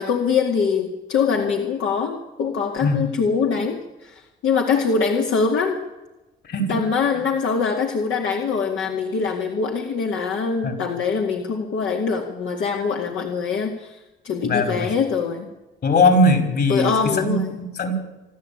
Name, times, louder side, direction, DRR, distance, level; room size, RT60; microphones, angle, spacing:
voice 1, 0.0-5.8 6.7-15.5 16.7-17.6, left 5 dB, 80° left, 1 dB, 2.2 m, -23 dB
voice 2, 6.4-6.8 10.6-10.7 14.4-14.9 15.8-18.0, left 2 dB, 55° left, 6 dB, 5.2 m, -20 dB
27.0 x 12.0 x 8.8 m, 1.0 s
cardioid pair, 90°, 20 cm